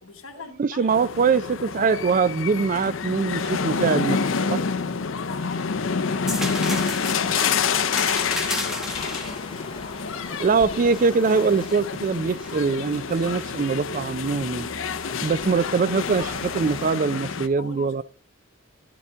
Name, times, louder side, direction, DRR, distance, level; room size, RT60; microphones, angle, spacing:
voice 1, 0.0-2.1 5.2-10.5 17.6-18.0, left 4 dB, 90° left, 1.4 m, -43 dB
voice 2, 0.6-4.2 4.5-4.6 10.4-14.7 15.2-18.0, right 5 dB, 40° right, 0.4 m, -23 dB
sound 1, 0.9-17.5, left 5 dB, 70° left, 0.6 m, -28 dB
sound 2, 6.3-11.9 12.4-13.4 15.4-15.6, equal, ahead, 0.9 m, -35 dB
sound 3, 6.4-16.9, left 2 dB, 25° left, 0.6 m, -42 dB
11.0 x 6.9 x 3.5 m
head